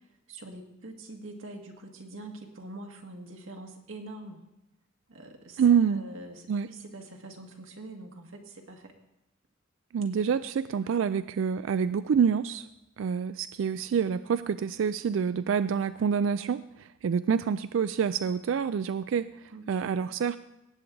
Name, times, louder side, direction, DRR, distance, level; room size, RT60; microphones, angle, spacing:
voice 1, 0.3-4.4 5.1-8.9 10.7-10.9 19.5-20.3, right 2 dB, 90° right, 2 dB, 1.9 m, -45 dB
voice 2, 5.6-6.0 6.5-6.7 9.9-12.7 13.0-20.4, right 7 dB, 70° right, 14 dB, 0.3 m, -27 dB
18.0 x 8.3 x 3.9 m, 0.93 s
head